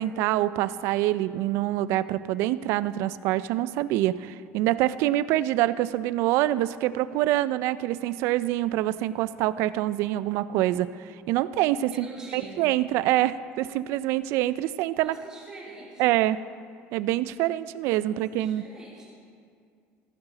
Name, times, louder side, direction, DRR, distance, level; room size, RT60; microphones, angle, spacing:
voice 1, 0.0-12.1 12.3-15.2 16.0-16.4 16.9-18.7, right 14 dB, 65° right, 16 dB, 0.3 m, -25 dB
voice 2, 11.9-12.6 15.0-16.0 18.0-19.0, right 2 dB, 15° right, -7 dB, 3.1 m, -44 dB
16.0 x 8.1 x 4.0 m, 2.3 s
cardioid pair, 155°, 5 cm